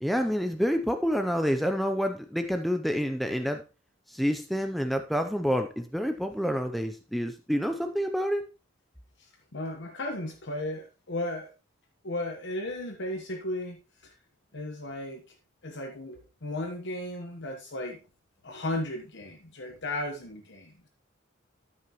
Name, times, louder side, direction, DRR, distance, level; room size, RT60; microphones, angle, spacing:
voice 1, 0.0-3.6 4.1-8.4, equal, ahead, 6 dB, 0.5 m, -28 dB
voice 2, 9.5-11.5 12.0-14.1 14.5-15.2 15.6-18.0 18.4-20.9, left 1 dB, 60° left, 3 dB, 1.2 m, -35 dB
13.5 x 6.0 x 3.0 m, 0.31 s
head